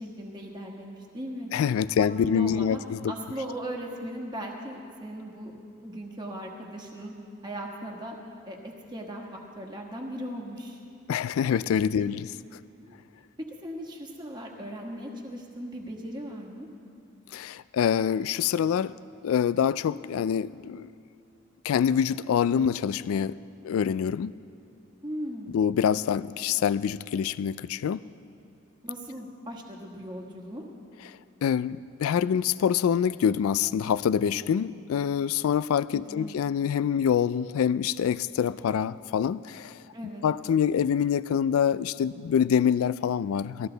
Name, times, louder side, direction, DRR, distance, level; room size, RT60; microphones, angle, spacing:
voice 1, 0.0-1.5 2.0-2.8 3.1-5.5 5.8-7.1 7.4-8.1 8.4-10.8 11.9-12.1 12.8-13.0 13.4-16.7 25.0-25.6 28.8-30.6 35.9-36.4 39.9-40.2, equal, 20° right, 0 dB, 1.3 m, -38 dB
voice 2, 1.5-3.1 11.1-12.3 17.3-18.9 19.2-20.9 21.6-23.4 23.6-24.3 25.5-28.0 31.4-39.8 40.2-43.7, left 8 dB, 85° left, 17 dB, 0.3 m, -25 dB
19.5 x 14.5 x 3.9 m, 2.5 s
head